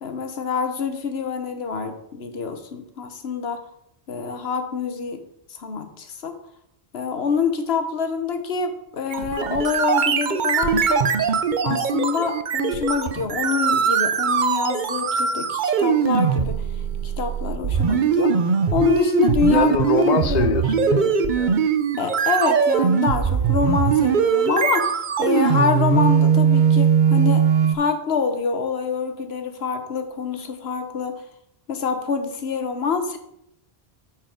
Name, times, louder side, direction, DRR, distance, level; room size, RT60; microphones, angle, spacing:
voice 1, 0.0-3.6 4.1-5.2 5.5-6.4 6.9-11.0 11.6-16.6 17.0-18.4 18.7-19.8 20.3-20.6 22.0-24.9 25.2-31.2 31.7-33.2, left 5 dB, 70° left, 7 dB, 1.1 m, -26 dB
sound 1, 9.1-27.7, right 6 dB, 55° right, 0.7 m, -20 dB
voice 2, 19.5-21.6, left 4 dB, 50° left, 10 dB, 0.6 m, -24 dB
8.8 x 4.6 x 5.0 m, 0.76 s
omnidirectional pair, 1.1 m